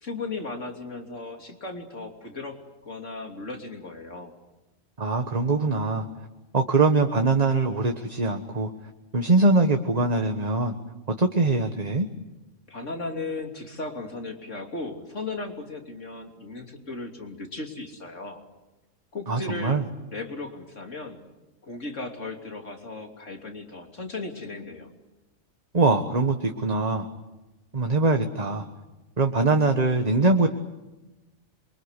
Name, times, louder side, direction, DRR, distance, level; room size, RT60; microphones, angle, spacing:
voice 1, 0.0-4.3 12.7-18.4 19.1-19.8 20.1-21.2 21.6-24.9, left 3 dB, 60° left, 4 dB, 3.6 m, -36 dB
voice 2, 5.0-6.1 6.5-8.7 9.1-10.7 11.2-12.1 19.3-19.8 25.7-27.1 27.7-28.6 29.2-30.5, right 3 dB, 30° right, 5 dB, 1.5 m, -22 dB
27.5 x 24.0 x 8.3 m, 1.1 s
omnidirectional pair, 1.4 m